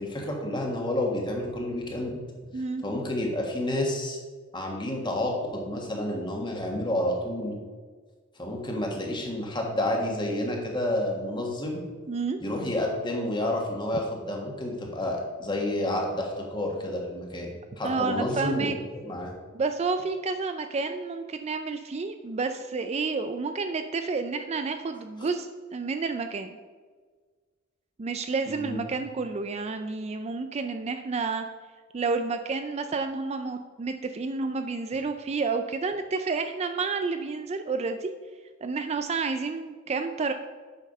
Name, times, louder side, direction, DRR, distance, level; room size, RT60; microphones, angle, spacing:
voice 1, 0.0-2.2 2.8-4.2 4.5-7.6 8.4-11.8 12.4-19.3 28.5-28.9, left 1 dB, 25° left, 0 dB, 1.6 m, -30 dB
voice 2, 2.5-2.8 12.1-12.4 17.8-18.8 19.5-26.5 28.0-31.5 31.9-38.1 38.6-40.3, right 4 dB, 30° right, 7 dB, 0.4 m, -30 dB
8.3 x 5.6 x 5.4 m, 1.5 s
head